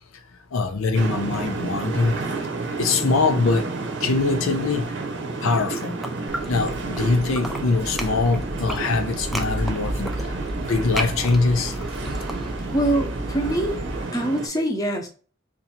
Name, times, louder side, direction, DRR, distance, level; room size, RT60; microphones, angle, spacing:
voice 1, 0.5-2.1 2.8-3.7 4.0-4.9 5.4-6.0 6.5-10.1 10.7-11.7, left 3 dB, 80° left, 0.5 m, -22 dB
sound 1, 0.9-14.5, right 3 dB, 60° right, 0.7 m, -31 dB
sound 2, 5.5-7.0 7.3-12.9, equal, ahead, 0.4 m, -35 dB
sound 3, 6.3-14.0, equal, 30° right, 0.8 m, -33 dB
voice 2, 12.7-13.8 14.1-15.1, right 1 dB, 15° left, 0.8 m, -24 dB
2.8 x 2.6 x 4.2 m
head